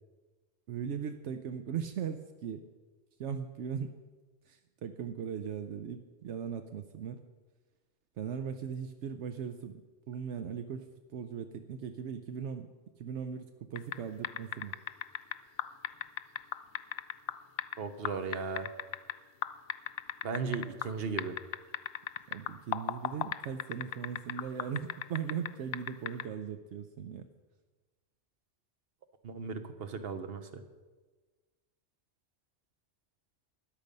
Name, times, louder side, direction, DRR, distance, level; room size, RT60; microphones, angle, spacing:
voice 1, 0.7-2.6 3.2-3.9 4.5-7.2 8.2-14.8 22.3-27.3, right 7 dB, 80° right, 8 dB, 0.9 m, -39 dB
sound 1, 13.8-14.0 14.2-17.8 18.0-19.1 19.4-20.9 21.2-25.5 25.7-26.2, left 11 dB, 70° left, 0.8 m, -35 dB
voice 2, 17.8-18.7 20.2-21.4 29.2-30.6, right 5 dB, 55° right, 9 dB, 1.2 m, -36 dB
13.5 x 10.0 x 5.3 m, 1.3 s
omnidirectional pair, 1.2 m